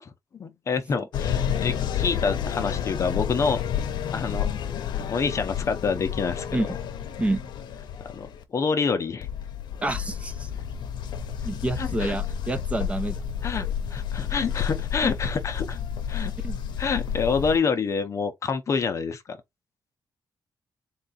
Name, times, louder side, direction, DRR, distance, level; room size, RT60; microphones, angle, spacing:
voice 1, 0.0-3.6 4.1-4.5 4.9-6.6 8.1-9.3 11.8-12.1 13.4-15.8 16.1-16.3 16.8-19.4, left 5 dB, 40° left, 0.6 m, -27 dB
sound 1, 1.1-8.4 9.2-17.6, left 8 dB, 85° left, 0.7 m, -30 dB
voice 2, 9.8-10.5 11.4-13.2 15.0-15.2 16.4-16.6, right 1 dB, 15° right, 0.6 m, -28 dB
3.8 x 2.3 x 4.0 m
cardioid pair, 135°, 8 cm